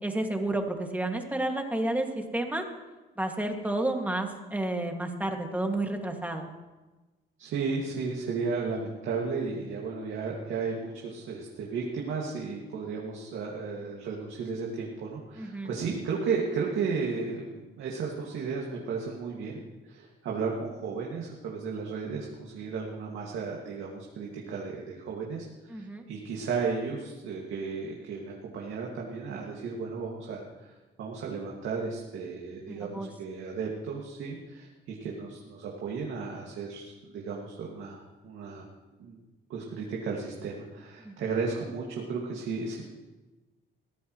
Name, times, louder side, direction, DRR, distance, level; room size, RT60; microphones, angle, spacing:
voice 1, 0.0-2.6 3.2-6.4 15.4-15.7 25.7-26.0 32.7-33.1 41.0-41.1, right 1 dB, 10° right, 2 dB, 2.2 m, -31 dB
voice 2, 7.4-30.7 31.0-38.6 39.0-39.2 39.5-42.8, right 5 dB, 80° right, -2 dB, 2.2 m, -34 dB
22.0 x 14.5 x 3.2 m, 1.2 s
cardioid pair, 90°, 20 cm